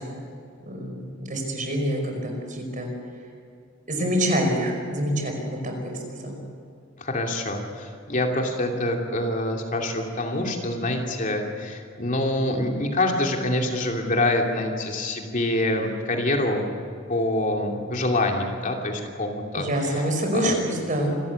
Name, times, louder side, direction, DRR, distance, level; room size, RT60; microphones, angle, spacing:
voice 1, 0.7-2.9 3.9-6.4 19.6-21.2, equal, 40° right, 3 dB, 5.2 m, -26 dB
voice 2, 7.0-16.7 17.1-20.0 20.3-20.5, left 1 dB, 40° left, 2 dB, 2.8 m, -26 dB
27.0 x 14.0 x 8.4 m, 2.4 s
head